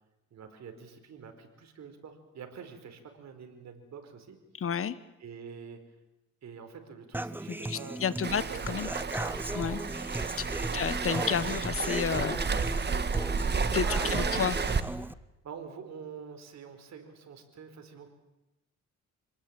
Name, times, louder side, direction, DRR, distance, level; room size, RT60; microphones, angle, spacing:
voice 1, 0.3-4.7 5.2-5.8 6.4-9.0 9.7-9.9 10.7-11.3 13.8-14.4 15.4-18.1, right 6 dB, 60° right, 6 dB, 4.8 m, -46 dB
voice 2, 4.6-5.0 7.5-8.9 9.5-9.8 10.7-12.4 13.7-14.6, left 7 dB, 45° left, 15 dB, 1.5 m, -31 dB
Human voice / Acoustic guitar, 7.1-15.1, right 1 dB, 5° right, 0.9 m, -37 dB
Waves surf, 8.2-14.8, right 5 dB, 35° right, 1.7 m, -31 dB
26.0 x 20.0 x 8.9 m, 0.95 s
cardioid pair, 90°, 30 cm